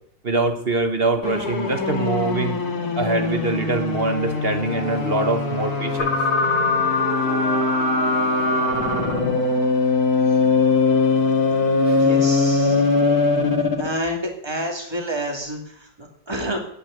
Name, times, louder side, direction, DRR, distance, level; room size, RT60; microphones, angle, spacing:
voice 1, 0.2-2.6 3.0-6.1 11.8-12.0, right 3 dB, 40° right, 8 dB, 1.3 m, -23 dB
sound 1, 1.2-13.9, left 4 dB, 65° left, 2.4 m, -21 dB
sound 2, 5.5-9.5, right 9 dB, 55° right, 0.7 m, -33 dB
voice 2, 11.9-12.8 13.8-16.6, equal, 15° right, 2 dB, 2.6 m, -29 dB
10.0 x 9.8 x 7.9 m, 0.71 s
omnidirectional pair, 1.8 m